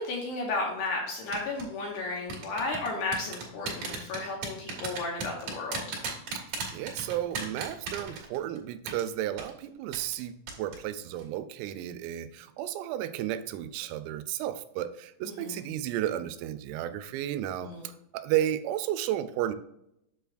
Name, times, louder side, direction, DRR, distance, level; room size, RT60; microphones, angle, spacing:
voice 1, 0.0-6.0 15.3-15.6 17.6-17.9, left 3 dB, 70° left, -1 dB, 2.7 m, -33 dB
sound 1, 1.3-1.6 2.3-8.6 8.9-9.0 9.4-9.5 9.9-10.2 10.5-10.8 11.1-11.2, right 5 dB, 55° right, 3.0 m, -35 dB
voice 2, 6.7-17.7 18.1-19.6, right 12 dB, 90° right, 12 dB, 3.3 m, -33 dB
8.4 x 6.8 x 2.5 m, 0.81 s
omnidirectional pair, 5.9 m